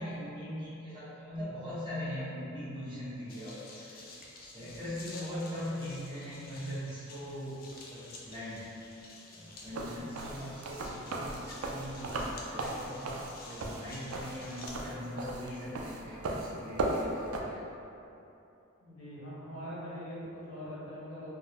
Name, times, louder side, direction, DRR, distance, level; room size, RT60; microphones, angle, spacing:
voice 1, 0.0-4.0 4.4-7.5 7.9-8.7 9.3-17.6, equal, 25° right, -13 dB, 1.1 m, -41 dB
sound 1, 3.3-14.7, left 2 dB, 45° left, 0.4 m, -51 dB
sound 2, 9.6-17.4, right 2 dB, 80° right, 0.3 m, -36 dB
voice 2, 18.8-21.3, equal, 75° left, -9 dB, 1.0 m, -42 dB
3.5 x 2.1 x 2.8 m, 2.8 s
head